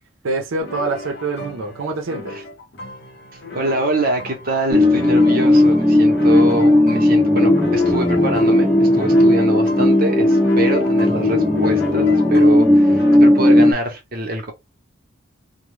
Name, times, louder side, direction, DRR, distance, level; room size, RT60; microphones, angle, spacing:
voice 1, 0.2-2.4, right 3 dB, 85° right, 0.6 m, -25 dB
sound 1, 0.6-13.2, left 2 dB, 55° left, 0.6 m, -34 dB
voice 2, 3.5-14.5, right 1 dB, 45° right, 0.8 m, -25 dB
sound 2, 4.7-13.7, left 1 dB, ahead, 0.4 m, -15 dB
2.2 x 2.1 x 3.1 m
head